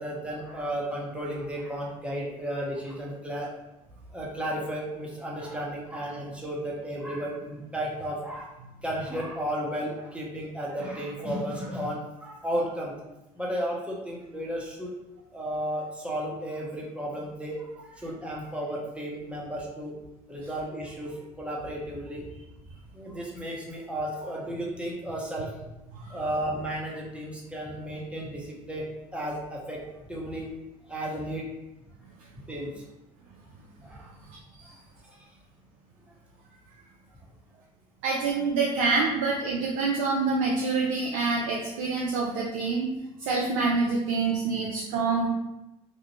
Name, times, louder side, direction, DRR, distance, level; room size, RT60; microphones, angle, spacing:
voice 1, 0.0-3.5 4.1-8.5 8.8-12.9 13.4-14.9 15.3-19.9 20.3-22.2 22.9-25.5 26.1-29.8 30.1-30.5 30.9-31.5 32.5-32.8 33.8-34.1, right 1 dB, 5° right, -4 dB, 0.8 m, -33 dB
voice 2, 38.0-42.9 43.3-45.3, right 4 dB, 80° right, -3 dB, 0.4 m, -26 dB
2.5 x 2.1 x 2.9 m, 0.95 s
hypercardioid pair, 60°, 18 cm